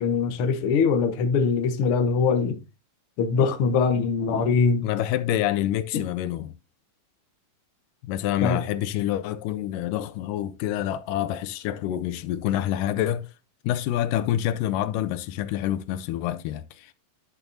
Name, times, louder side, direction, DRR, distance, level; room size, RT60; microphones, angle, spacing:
voice 1, 0.0-2.6 3.2-4.9 5.9-6.0 8.4-8.6, left 5 dB, 65° left, 1.3 m, -22 dB
voice 2, 4.8-6.5 8.0-13.3 13.6-16.9, left 12 dB, 85° left, 2.2 m, -27 dB
10.5 x 6.9 x 2.7 m
omnidirectional pair, 3.8 m